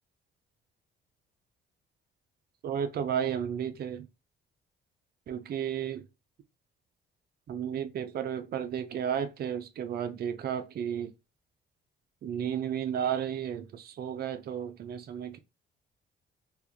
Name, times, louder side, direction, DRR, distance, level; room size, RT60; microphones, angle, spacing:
voice 1, 2.6-4.1 5.3-6.0 7.5-11.1 12.2-15.4, right 8 dB, 50° right, 0.5 m, -33 dB
3.5 x 2.4 x 2.9 m
cardioid pair, 90°, 20 cm